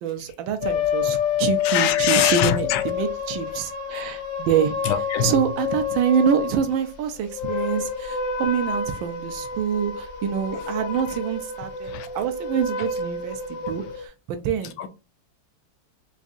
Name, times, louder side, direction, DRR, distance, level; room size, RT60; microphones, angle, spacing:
voice 1, 0.0-4.8 5.2-14.8, right 7 dB, 75° right, 1.3 m, -26 dB
sound 1, 0.6-6.7 7.2-14.1, left 7 dB, 65° left, 1.1 m, -28 dB
voice 2, 1.6-2.8 4.8-5.3 10.5-10.6 11.9-12.1 14.8-14.9, left 10 dB, 85° left, 1.4 m, -23 dB
4.9 x 2.6 x 2.4 m
omnidirectional pair, 2.2 m